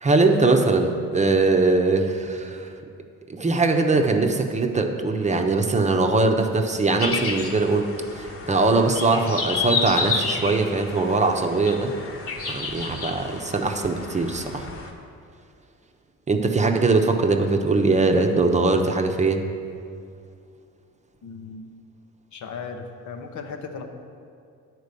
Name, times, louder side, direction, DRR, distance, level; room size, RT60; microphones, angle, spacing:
voice 1, 0.0-2.7 3.3-7.9 8.2-11.9 12.5-14.7 16.3-19.4, right 3 dB, 25° right, 4 dB, 0.8 m, -21 dB
sound 1, 7.0-14.9, left 4 dB, 45° left, 1.2 m, -31 dB
voice 2, 21.2-21.6 22.3-23.8, left 5 dB, 75° left, 4 dB, 1.0 m, -36 dB
9.5 x 4.5 x 6.8 m, 2.4 s
cardioid pair, 90°, 30 cm